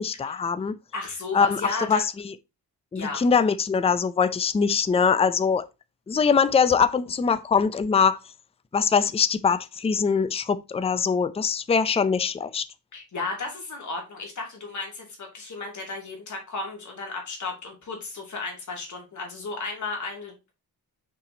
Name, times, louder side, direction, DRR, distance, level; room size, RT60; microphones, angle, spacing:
voice 1, 0.0-0.8 1.3-1.6 1.9-2.0 2.9-5.7 6.1-8.2 8.7-12.6, left 6 dB, 15° left, 0.4 m, -22 dB
voice 2, 0.9-2.0 2.9-3.2 12.9-20.5, left 3 dB, 50° left, 2.7 m, -34 dB
5.9 x 4.8 x 3.9 m
wide cardioid pair, 135°, 38 cm